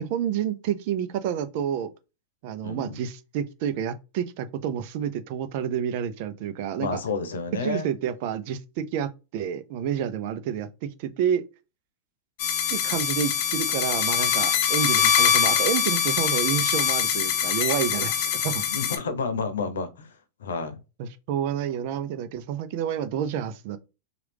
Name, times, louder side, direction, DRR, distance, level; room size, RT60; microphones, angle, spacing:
voice 1, 0.0-1.9 2.4-7.0 7.6-11.5 12.7-18.6 21.0-23.8, right 9 dB, 55° right, 0.5 m, -29 dB
voice 2, 2.6-3.0 6.8-7.8 18.7-20.8, left 4 dB, 85° left, 0.8 m, -30 dB
sound 1, 12.4-19.0, left 8 dB, 55° left, 0.6 m, -23 dB
3.0 x 2.4 x 3.4 m
hypercardioid pair, 120°, 0 cm